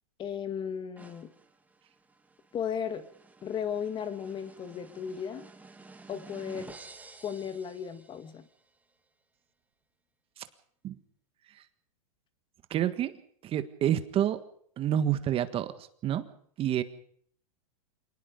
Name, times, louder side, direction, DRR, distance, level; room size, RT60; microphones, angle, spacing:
voice 1, 0.2-1.3 2.5-3.0 3.4-5.4 6.1-6.7 7.2-8.5, left 8 dB, 25° left, 11 dB, 1.8 m, -35 dB
sound 1, 1.0-8.5, right 3 dB, 10° right, 2.0 m, -52 dB
voice 2, 12.7-13.2 13.4-14.4 14.8-16.3 16.6-16.8, right 11 dB, 30° right, 11 dB, 1.7 m, -28 dB
27.5 x 20.0 x 5.3 m, 0.62 s
hypercardioid pair, 125°, 20 cm